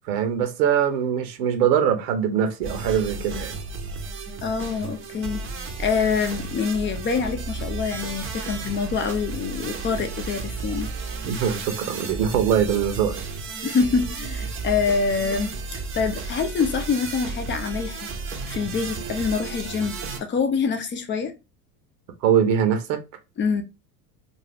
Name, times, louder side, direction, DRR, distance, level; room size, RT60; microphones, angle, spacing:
voice 1, 0.1-3.6 11.3-13.2 22.2-23.0, right 8 dB, 75° right, 0.9 m, -22 dB
sound 1, 2.6-20.2, right 4 dB, 25° right, 0.7 m, -33 dB
voice 2, 4.4-5.4 5.8-10.9 13.6-18.1 18.5-21.3 23.4-23.6, left 5 dB, 25° left, 0.5 m, -25 dB
2.6 x 2.3 x 3.4 m
hypercardioid pair, 90°, 50 cm